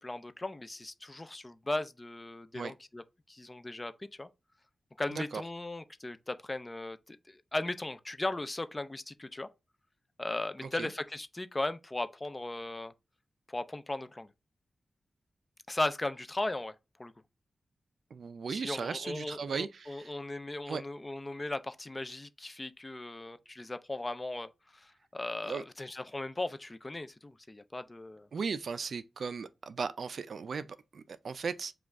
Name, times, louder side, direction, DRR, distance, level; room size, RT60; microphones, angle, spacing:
voice 1, 0.0-3.0 3.3-4.3 5.0-9.5 10.2-12.9 13.5-14.3 15.7-16.7 17.0-17.1 18.5-28.3, left 2 dB, 20° left, 0.3 m, -37 dB
voice 2, 5.1-5.4 10.6-10.9 18.1-20.1 20.7-20.8 25.4-25.6 28.3-31.7, right 5 dB, 65° right, 0.4 m, -37 dB
5.1 x 2.4 x 3.5 m
wide cardioid pair, 150°, 0 cm